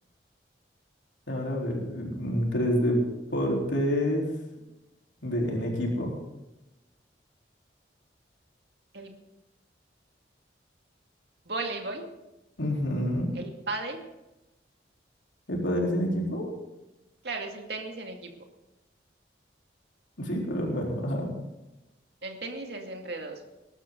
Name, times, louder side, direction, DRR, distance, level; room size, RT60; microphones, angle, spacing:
voice 1, 1.3-3.0 3.3-4.4 5.2-6.2 12.6-13.3 15.5-16.5 20.2-21.3, equal, 85° left, -1 dB, 3.9 m, -28 dB
voice 2, 11.5-12.1 13.3-14.0 17.2-18.3 22.2-23.4, right 3 dB, 60° right, 3 dB, 2.3 m, -35 dB
20.0 x 12.5 x 3.9 m, 0.99 s
head